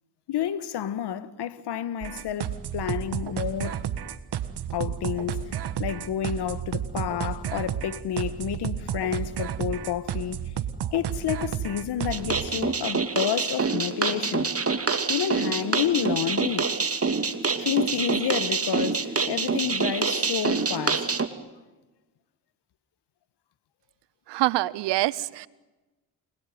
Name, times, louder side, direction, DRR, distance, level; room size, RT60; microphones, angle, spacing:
voice 1, 0.3-3.8 4.7-10.5 10.9-14.6 15.1-16.7 17.6-21.1, left 10 dB, 75° left, 1.6 m, -30 dB
sound 1, 2.0-12.5, right 10 dB, 70° right, 1.6 m, -32 dB
sound 2, 12.1-21.3, right 4 dB, 35° right, 2.6 m, -26 dB
voice 2, 24.3-25.5, right 17 dB, 90° right, 0.9 m, -25 dB
29.5 x 21.5 x 9.4 m
supercardioid pair, 55°, 41 cm